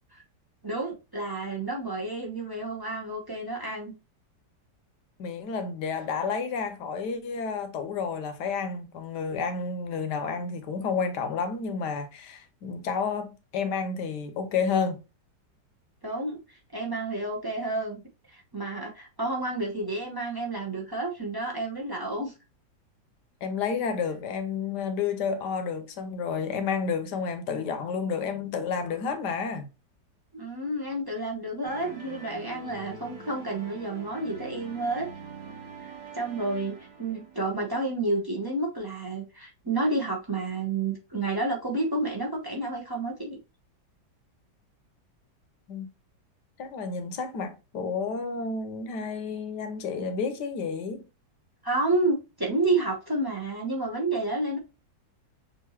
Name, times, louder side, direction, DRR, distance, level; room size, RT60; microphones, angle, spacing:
voice 1, 0.6-3.9 16.0-18.0 18.3-22.3 30.3-35.1 35.8-43.4 51.6-54.6, right 2 dB, 30° right, 0.4 m, -30 dB
voice 2, 5.2-15.0 23.4-29.7 45.7-45.9 46.6-51.0, left 5 dB, 75° left, 1.4 m, -30 dB
sound 1, 31.6-37.9, right 4 dB, 85° right, 1.7 m, -44 dB
6.7 x 2.6 x 2.9 m
omnidirectional pair, 1.9 m